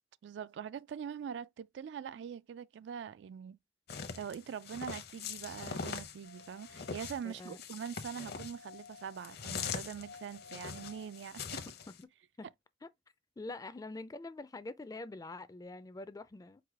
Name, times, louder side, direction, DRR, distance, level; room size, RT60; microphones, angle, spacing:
voice 1, 0.2-3.6 4.2-11.7, right 7 dB, 75° right, 0.3 m, -43 dB
sound 1, 3.9-12.0, left 6 dB, 60° left, 0.7 m, -42 dB
sound 2, 6.2-7.3 8.2-9.4 10.0-11.3 11.8-11.9, left 5 dB, 85° left, 1.2 m, -55 dB
voice 2, 7.2-7.6 12.0-12.1 12.4-12.5 12.8-12.9 13.4-16.6, left 2 dB, 20° left, 0.3 m, -45 dB
4.7 x 2.2 x 4.7 m
head